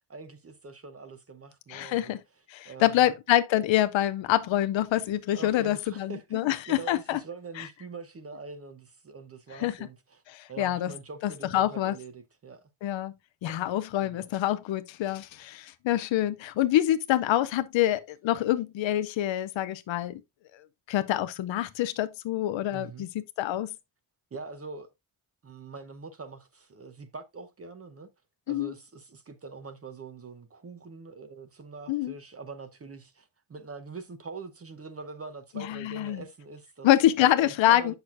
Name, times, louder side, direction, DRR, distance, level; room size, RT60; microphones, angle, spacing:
voice 1, 0.1-2.2 2.6-3.1 5.3-10.2 10.5-12.7 13.5-13.6 14.0-14.3 22.7-23.1 24.3-24.9 25.4-28.1 28.5-36.9 37.4-37.9, right 4 dB, 30° right, 0.8 m, -44 dB
voice 2, 1.7-2.2 2.5-7.2 7.6-7.7 9.5-9.7 10.3-10.9 11.2-11.9 12.8-13.1 13.4-20.2 20.9-23.7 28.5-28.7 31.9-32.1 35.6-36.2 36.8-37.9, left 13 dB, 85° left, 0.6 m, -26 dB
8.0 x 6.1 x 2.5 m
wide cardioid pair, 160°, 45 cm